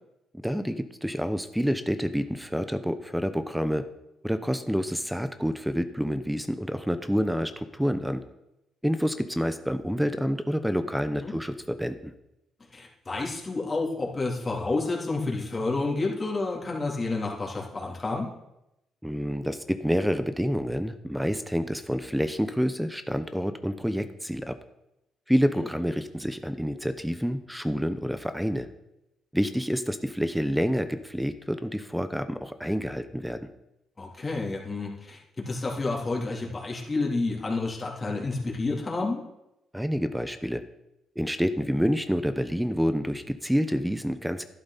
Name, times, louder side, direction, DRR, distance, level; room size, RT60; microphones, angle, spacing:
voice 1, 0.4-3.8 4.2-8.2 8.8-12.1 19.0-24.6 25.3-28.7 29.3-33.4 39.7-40.6 41.2-44.4, equal, 5° right, 10 dB, 0.8 m, -28 dB
voice 2, 12.7-18.3 25.6-25.7 34.0-39.2, left 3 dB, 30° left, -2 dB, 3.2 m, -30 dB
12.0 x 11.5 x 4.2 m, 0.89 s
cardioid pair, 90°, 0 cm